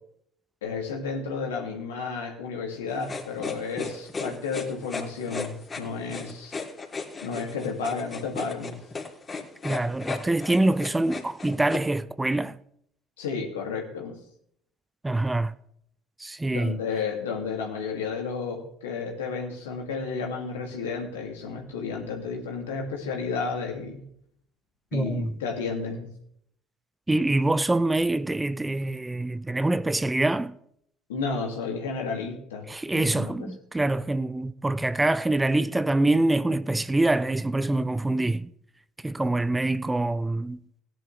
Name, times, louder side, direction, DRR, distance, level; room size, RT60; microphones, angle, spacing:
voice 1, 0.6-6.6 7.2-8.8 13.2-14.1 16.5-24.0 24.9-26.1 31.1-32.7 32.9-33.3, left 5 dB, 85° left, 2.3 m, -32 dB
sound 1, 3.0-11.8, left 4 dB, 30° left, 2.9 m, -35 dB
voice 2, 9.6-12.6 15.0-15.5 16.2-16.8 24.9-25.3 27.1-30.5 32.7-38.5 39.0-40.6, right 2 dB, 15° right, 0.6 m, -25 dB
17.5 x 10.5 x 3.3 m
hypercardioid pair, 65°, 0 cm